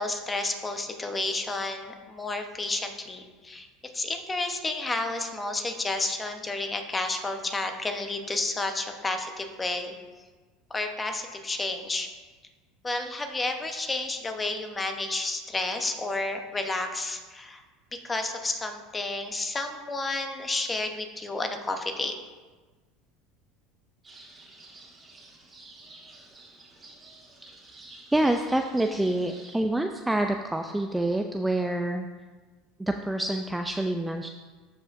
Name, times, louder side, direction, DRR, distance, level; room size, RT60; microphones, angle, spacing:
voice 1, 0.0-9.9 10.7-12.1 12.8-17.6 17.9-22.2, left 2 dB, 20° left, 6 dB, 0.9 m, -31 dB
sound 1, 24.0-29.6, right 2 dB, 20° right, 2.0 m, -50 dB
voice 2, 28.1-32.1 32.8-34.3, right 1 dB, 5° right, 5 dB, 0.4 m, -27 dB
13.0 x 5.0 x 2.6 m, 1.3 s
hypercardioid pair, 95°, 0 cm